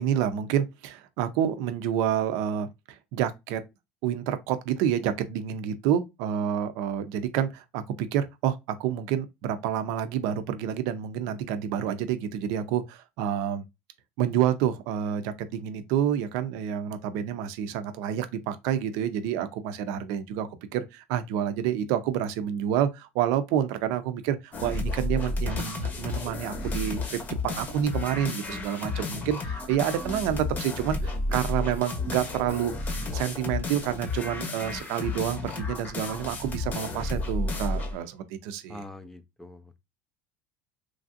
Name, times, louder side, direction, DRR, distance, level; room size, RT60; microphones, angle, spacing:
voice 1, 0.0-3.6 4.0-13.6 14.2-38.8, right 9 dB, 70° right, 0.5 m, -28 dB
sound 1, 24.5-38.0, left 2 dB, 30° left, 0.8 m, -32 dB
voice 2, 28.5-28.9 38.7-39.7, left 1 dB, 5° left, 0.4 m, -44 dB
3.2 x 2.5 x 2.5 m
supercardioid pair, 125°, 6 cm